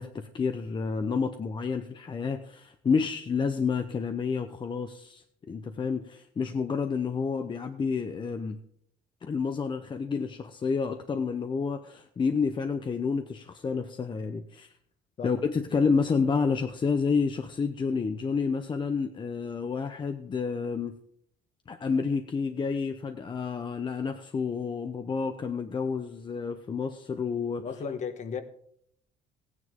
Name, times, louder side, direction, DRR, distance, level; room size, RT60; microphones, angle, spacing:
voice 1, 0.0-8.6 9.2-14.7 15.2-20.9 21.7-27.7, left 5 dB, 30° left, 0.7 m, -29 dB
voice 2, 27.6-28.4, left 6 dB, 45° left, 1.2 m, -35 dB
15.5 x 9.6 x 3.7 m
cardioid pair, 110°, 17 cm